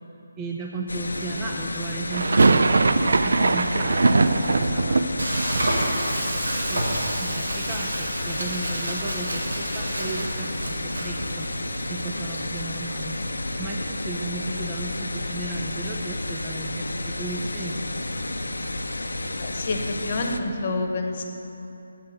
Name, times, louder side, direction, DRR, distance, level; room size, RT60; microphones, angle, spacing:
voice 1, 0.4-2.8 3.2-5.2 6.4-11.5 11.9-13.2 13.6-18.0, right 3 dB, 15° right, -1 dB, 0.5 m, -35 dB
sound 1, 0.9-20.4, left 2 dB, 90° left, 0.6 m, -31 dB
sound 2, 2.1-8.1 8.3-9.2 9.4-9.5 9.8-11.9, right 3 dB, 65° right, 0.4 m, -23 dB
Frying (food), 5.2-13.2, right 1 dB, 85° right, 1.9 m, -31 dB
voice 2, 19.4-21.2, left 2 dB, 45° left, 3 dB, 1.1 m, -28 dB
7.5 x 6.6 x 7.7 m, 2.9 s
figure-of-eight pair, 160°, 0 cm